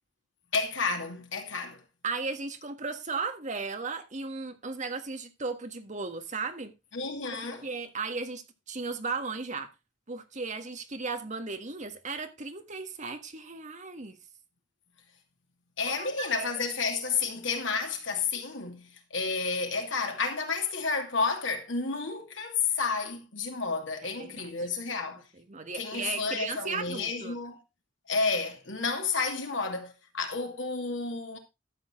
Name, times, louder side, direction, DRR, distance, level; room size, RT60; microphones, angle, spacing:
voice 1, 0.5-1.8 6.9-7.7 15.8-25.2 25.7-27.6 28.1-31.4, left 4 dB, 80° left, 2.6 m, -31 dB
voice 2, 2.0-6.7 7.4-9.7 10.1-14.2 15.9-16.5 24.0-24.5 25.3-27.4, right 4 dB, 40° right, 1.6 m, -36 dB
12.5 x 8.2 x 3.7 m
head